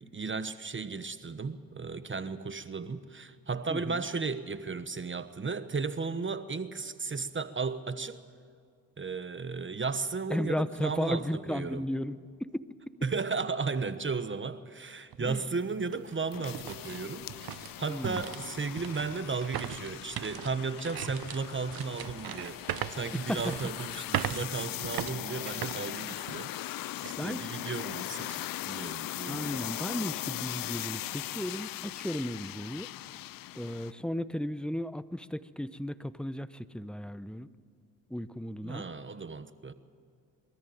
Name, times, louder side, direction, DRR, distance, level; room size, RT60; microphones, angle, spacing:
voice 1, 0.0-8.2 9.0-11.9 13.0-17.3 17.8-26.5 27.0-29.7 38.6-39.7, right 4 dB, 30° right, 1.2 m, -35 dB
voice 2, 3.7-4.0 10.3-12.9 15.2-15.4 17.9-18.3 23.3-23.4 27.2-27.5 29.3-32.9 33.5-37.5 38.1-38.8, equal, ahead, 0.9 m, -35 dB
sound 1, 15.1-15.2 15.7-26.6 27.0-27.2 27.7-28.1, right 11 dB, 70° right, 0.9 m, -39 dB
sound 2, 15.3-33.9, left 16 dB, 65° left, 0.5 m, -40 dB
23.0 x 13.5 x 9.1 m
supercardioid pair, 55°, 37 cm